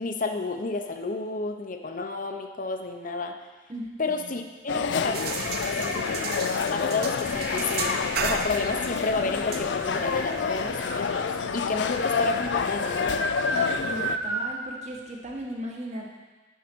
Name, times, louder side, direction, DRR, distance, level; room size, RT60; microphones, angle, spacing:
voice 1, 0.0-3.3 4.0-5.2 5.7-6.3 6.6-13.2, left 3 dB, 45° left, 5 dB, 0.8 m, -31 dB
voice 2, 3.7-4.3 13.5-16.1, right 1 dB, 35° right, -1 dB, 1.4 m, -37 dB
sound 1, 4.7-14.2, left 6 dB, 70° left, 0.4 m, -29 dB
sound 2, 4.7-14.5, right 1 dB, 5° right, 1.0 m, -34 dB
sound 3, 5.1-12.1, right 5 dB, 55° right, 0.7 m, -36 dB
11.0 x 4.9 x 6.1 m, 1.3 s
head